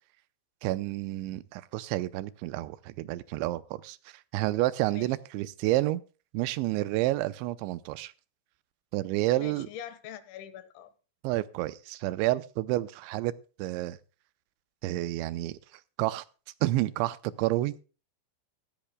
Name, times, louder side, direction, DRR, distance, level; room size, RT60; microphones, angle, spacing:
voice 1, 0.6-4.0 4.3-6.0 6.3-8.1 8.9-9.7 11.2-13.3 13.6-14.0 14.8-15.6 16.0-16.2 16.6-17.7, right 17 dB, 85° right, 3.0 m, -29 dB
voice 2, 9.4-10.9, left 10 dB, 80° left, 3.6 m, -43 dB
17.0 x 13.5 x 2.2 m
omnidirectional pair, 5.3 m